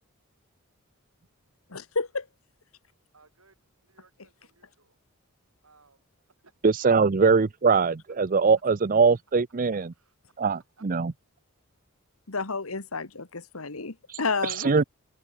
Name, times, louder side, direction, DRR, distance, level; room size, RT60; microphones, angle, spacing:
voice 1, 1.7-2.3 12.3-14.7, left 4 dB, 85° left, 1.9 m, -31 dB
voice 2, 3.1-5.0 5.6-6.5 9.9-10.2, right 3 dB, 80° right, 6.0 m, -62 dB
voice 3, 6.6-9.9 10.4-11.1 14.1-14.8, right 5 dB, 40° right, 0.5 m, -22 dB
head